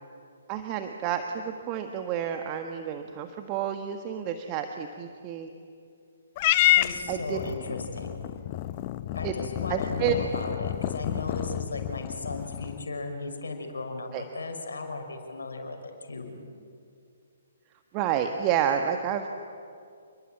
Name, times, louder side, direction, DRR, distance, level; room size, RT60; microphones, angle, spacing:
voice 1, 0.5-5.5 7.1-7.4 9.2-9.3 9.7-10.1 14.1-14.2 17.9-19.3, right 9 dB, 30° right, 6 dB, 1.4 m, -29 dB
Purr / Meow, 6.4-12.9, left 15 dB, 35° left, 0.8 m, -29 dB
voice 2, 6.8-8.3 9.1-16.4, left 3 dB, 70° left, 4 dB, 5.5 m, -36 dB
28.5 x 21.5 x 9.2 m, 2.4 s
figure-of-eight pair, 130°, 0 cm